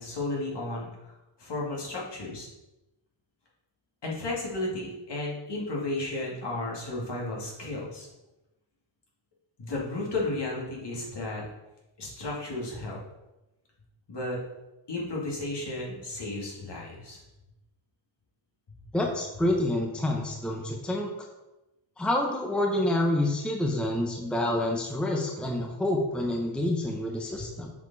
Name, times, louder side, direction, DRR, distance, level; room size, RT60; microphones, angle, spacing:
voice 1, 0.0-2.5 4.0-8.1 9.6-11.4 12.0-13.0 14.1-14.4 14.9-17.2, left 2 dB, 55° left, -4 dB, 2.3 m, -33 dB
voice 2, 18.9-21.1 22.0-27.7, left 1 dB, ahead, 1 dB, 0.8 m, -28 dB
7.2 x 4.4 x 4.1 m, 0.99 s
cardioid pair, 90°, 49 cm